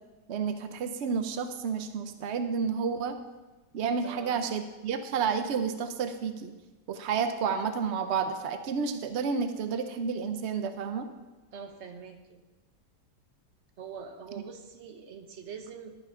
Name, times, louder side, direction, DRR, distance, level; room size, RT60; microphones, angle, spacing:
voice 1, 0.3-3.2 3.7-6.5 6.9-11.1, right 6 dB, 80° right, 8 dB, 0.6 m, -30 dB
voice 2, 4.0-4.4 11.5-12.4 13.8-16.0, right 6 dB, 50° right, 6 dB, 1.0 m, -44 dB
11.0 x 7.4 x 5.4 m, 1.2 s
omnidirectional pair, 2.0 m